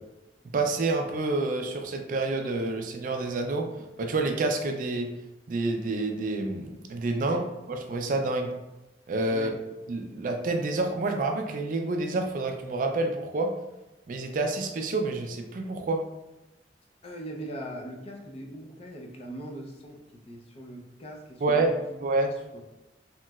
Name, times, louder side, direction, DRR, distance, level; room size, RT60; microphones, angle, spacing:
voice 1, 0.5-5.1 5.5-7.4 7.7-8.5 9.1-9.5 9.9-13.5 14.1-16.0 21.4-21.8 22.0-22.3, right 2 dB, 50° right, 3 dB, 0.3 m, -28 dB
voice 2, 7.2-7.5 9.3-9.5 17.0-21.9 22.2-22.7, right 1 dB, 35° left, 0 dB, 0.4 m, -41 dB
3.0 x 2.8 x 2.3 m, 0.96 s
head